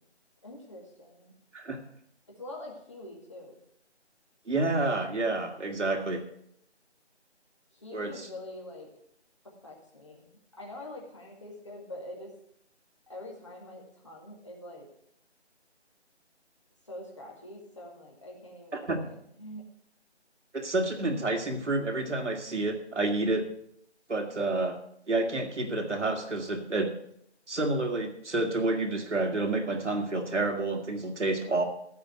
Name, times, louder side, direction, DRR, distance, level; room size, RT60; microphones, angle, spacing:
voice 1, 0.4-1.3 2.3-3.6 7.7-8.9 9.6-12.3 13.1-14.9 16.9-19.6, left 1 dB, 25° left, -2 dB, 2.0 m, -45 dB
voice 2, 4.5-6.2 7.9-8.3 18.7-19.2 20.5-23.4 24.1-24.8 25.1-26.9 27.5-31.6, right 2 dB, 90° right, 4 dB, 2.4 m, -29 dB
15.0 x 5.2 x 7.6 m, 0.72 s
figure-of-eight pair, 175°, 34 cm